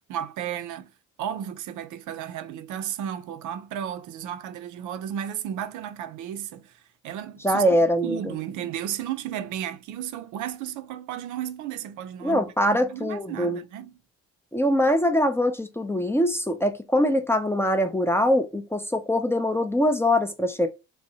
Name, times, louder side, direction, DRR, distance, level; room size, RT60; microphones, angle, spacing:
voice 1, 0.1-0.9 1.2-7.7 8.0-13.9, right 10 dB, 80° right, 0.4 m, -34 dB
voice 2, 7.4-8.4 12.2-13.6 14.5-20.7, equal, 10° left, 0.3 m, -23 dB
2.7 x 2.1 x 2.6 m
cardioid pair, 90°, 30 cm